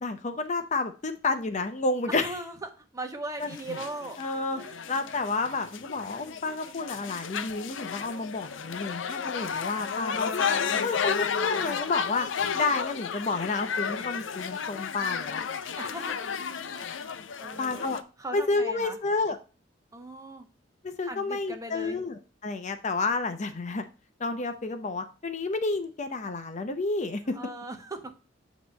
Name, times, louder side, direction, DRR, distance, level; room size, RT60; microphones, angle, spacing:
voice 1, 0.0-2.3 3.4-3.5 4.2-4.6 4.9-12.3 12.5-15.4 17.6-18.0 18.3-19.4 20.8-23.8 24.2-27.3, left 3 dB, 40° left, 8 dB, 0.7 m, -30 dB
voice 2, 2.1-4.2 4.5-5.0 10.3-10.9 15.8-16.2 16.4-17.1 17.4-17.9 18.2-19.0 19.9-20.5 21.0-22.0 27.2-28.1, right 2 dB, 20° right, 4 dB, 1.0 m, -39 dB
sound 1, 3.4-18.0, left 6 dB, 80° left, 0.6 m, -33 dB
8.2 x 3.0 x 5.2 m, 0.35 s
head